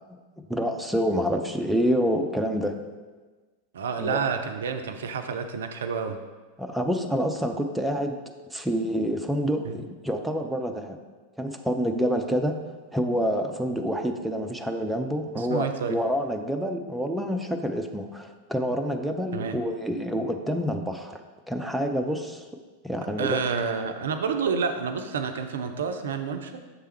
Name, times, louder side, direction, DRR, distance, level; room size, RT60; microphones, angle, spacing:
voice 1, 0.5-2.7 4.0-4.2 6.6-8.2 8.5-11.0 11.4-12.6 12.9-21.2 21.5-22.4 22.8-23.4, equal, 5° right, 4 dB, 0.4 m, -27 dB
voice 2, 3.7-6.2 9.6-9.8 15.3-16.0 19.3-19.6 23.2-26.5, right 6 dB, 65° right, 7 dB, 0.4 m, -29 dB
6.7 x 3.4 x 4.3 m, 1.3 s
figure-of-eight pair, 90°, 0 cm